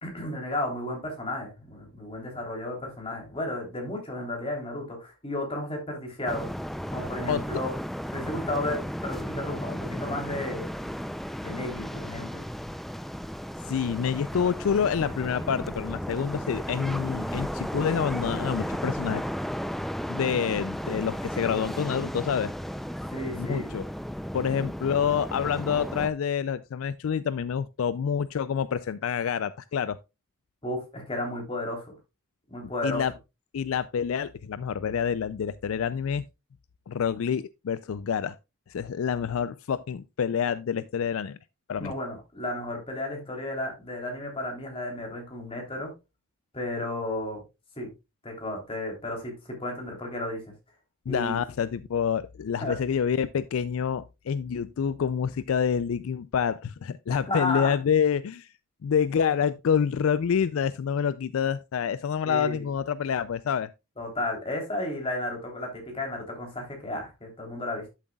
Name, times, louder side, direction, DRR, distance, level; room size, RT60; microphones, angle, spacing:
voice 1, 0.0-6.5 6.9-7.8 8.1-10.7 11.4-12.4 23.1-23.8 30.6-31.9 32.5-33.0 41.8-45.9 46.5-47.4 47.8-47.9 48.2-50.5 51.1-51.4 52.6-52.8 57.3-57.8 62.2-62.7 64.0-67.9, left 1 dB, 25° left, 3.3 m, -33 dB
sound 1, 6.3-26.1, equal, ahead, 0.4 m, -34 dB
voice 2, 13.7-19.2 20.1-22.5 23.4-23.9 24.3-30.0 32.8-33.1 33.5-36.2 36.9-38.4 38.7-41.4 41.7-41.9 51.1-58.5 58.8-63.7, left 7 dB, 70° left, 0.4 m, -27 dB
11.5 x 7.5 x 2.3 m
head